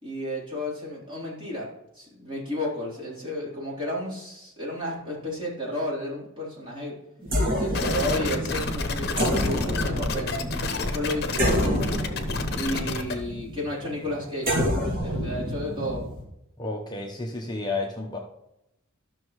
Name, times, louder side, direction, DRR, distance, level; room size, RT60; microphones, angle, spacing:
voice 1, 0.0-1.7 2.0-6.9 7.5-10.3 10.8-12.0 12.5-14.6 15.0-16.1, left 1 dB, 25° right, -6 dB, 3.6 m, -32 dB
sound 1, 7.2-16.2, equal, 40° right, 2.6 m, -28 dB
sound 2, 7.7-13.1, left 3 dB, 50° left, 1.0 m, -30 dB
voice 2, 16.6-18.2, left 3 dB, 20° left, 0 dB, 0.8 m, -31 dB
12.5 x 6.3 x 3.1 m, 0.84 s
head